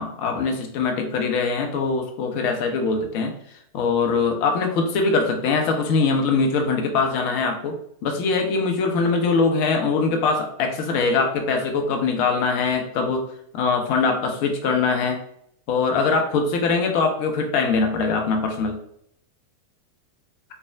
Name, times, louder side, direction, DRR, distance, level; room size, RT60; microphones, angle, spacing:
voice 1, 0.0-3.3 3.7-7.7 8.0-13.3 13.5-15.2 15.7-18.8, left 4 dB, 45° left, 3 dB, 0.5 m, -22 dB
3.3 x 2.1 x 2.4 m, 0.69 s
figure-of-eight pair, 90°, 0 cm